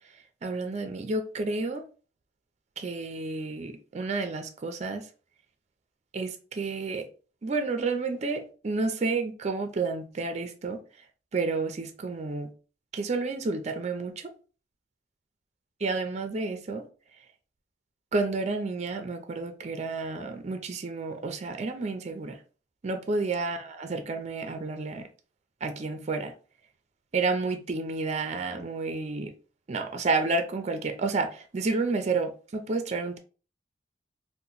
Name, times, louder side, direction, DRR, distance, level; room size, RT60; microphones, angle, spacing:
voice 1, 0.4-1.8 2.8-5.0 6.1-7.1 7.4-10.8 11.3-12.5 12.9-14.3 15.8-16.8 18.1-22.4 22.8-25.1 25.6-26.3 27.1-29.3 29.7-33.2, right 3 dB, 40° right, 0.4 m, -30 dB
2.8 x 2.1 x 3.9 m
head